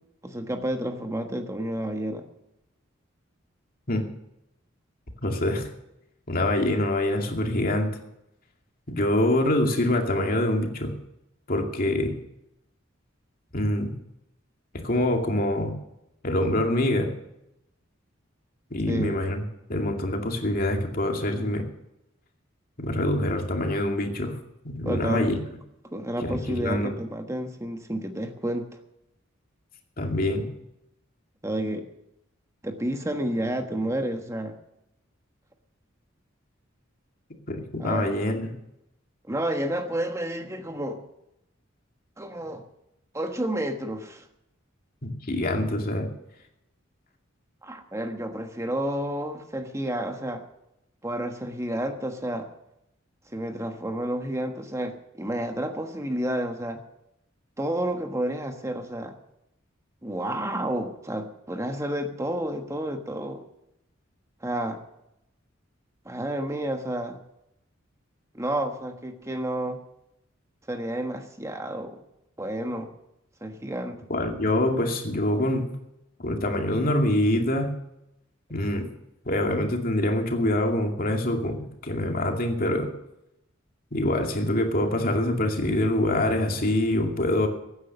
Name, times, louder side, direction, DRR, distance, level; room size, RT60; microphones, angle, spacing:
voice 1, 0.2-2.2 18.9-19.1 24.8-25.3 25.9-28.7 31.4-31.9 32.6-34.6 37.8-38.3 39.3-41.0 42.2-42.6 43.1-44.2 47.6-50.4 51.0-52.5 53.3-56.8 57.6-59.2 60.0-63.4 64.4-64.8 66.0-67.2 68.3-69.8 70.7-72.0 72.4-72.9 73.4-74.0, right 1 dB, 15° right, 6 dB, 1.3 m, -30 dB
voice 2, 5.2-5.7 6.3-8.0 8.9-10.9 11.5-12.1 13.5-13.9 14.7-15.7 16.2-17.1 18.7-19.4 19.7-21.7 22.8-24.4 24.6-25.4 26.2-26.9 30.0-30.5 37.5-38.5 45.0-46.1 74.1-75.7 76.2-77.7 78.5-78.9 79.3-81.6 81.8-82.9 83.9-87.5, left 1 dB, 45° left, 3 dB, 2.4 m, -25 dB
16.0 x 9.6 x 7.0 m, 0.83 s
head